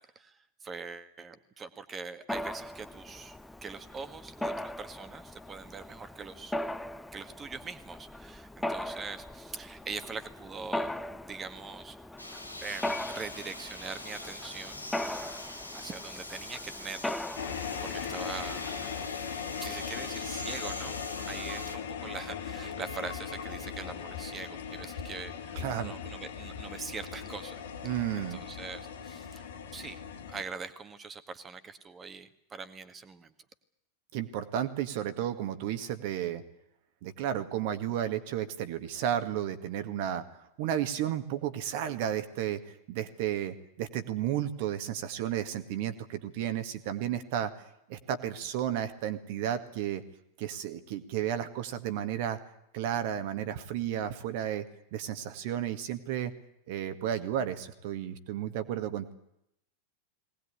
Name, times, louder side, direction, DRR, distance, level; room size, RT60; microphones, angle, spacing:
voice 1, 0.2-6.6 7.1-12.0 12.6-15.4 15.7-19.1 19.4-21.0 21.3-30.0 30.3-33.3, right 5 dB, 20° right, 10 dB, 1.9 m, -43 dB
Mechanisms, 2.3-19.1, left 1 dB, 5° left, 0.8 m, -39 dB
sound 1, 12.2-21.8, left 1 dB, 85° left, 2.2 m, -43 dB
sound 2, 17.4-30.4, left 7 dB, 60° left, 2.1 m, -39 dB
voice 2, 25.6-25.9 27.8-28.4 34.1-36.4 37.0-40.2 40.6-42.6 42.9-47.5 47.9-50.0 50.4-52.4 52.7-54.7 54.9-56.3 56.7-59.1, right 10 dB, 50° right, 10 dB, 2.0 m, -33 dB
20.5 x 19.0 x 10.0 m, 0.79 s
figure-of-eight pair, 90°, 0 cm